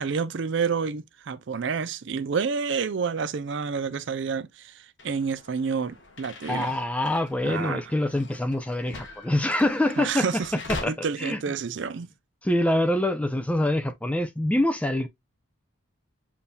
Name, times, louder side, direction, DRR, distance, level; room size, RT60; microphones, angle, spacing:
voice 1, 0.0-6.7 7.4-7.8 10.0-10.5 10.9-12.1, right 5 dB, 55° right, 0.4 m, -29 dB
sound 1, 5.0-10.8, left 2 dB, 55° left, 1.1 m, -42 dB
voice 2, 6.5-10.4 10.7-10.9 11.2-11.4 12.4-15.1, left 1 dB, 5° left, 0.3 m, -25 dB
7.1 x 2.7 x 2.2 m
head